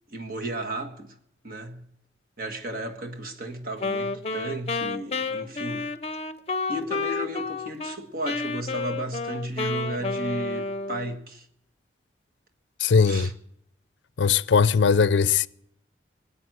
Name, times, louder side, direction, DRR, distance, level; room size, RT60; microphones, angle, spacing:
voice 1, 0.1-1.1 1.4-1.8 2.4-5.9 6.7-11.4 13.0-13.3, right 1 dB, 55° right, 1.6 m, -34 dB
Wind instrument woodwind instrument, 3.8-8.0 8.2-11.2, left 3 dB, 35° left, 0.7 m, -30 dB
voice 2, 12.8-13.3 14.2-15.5, left 5 dB, 85° left, 0.5 m, -20 dB
19.5 x 8.8 x 7.8 m
head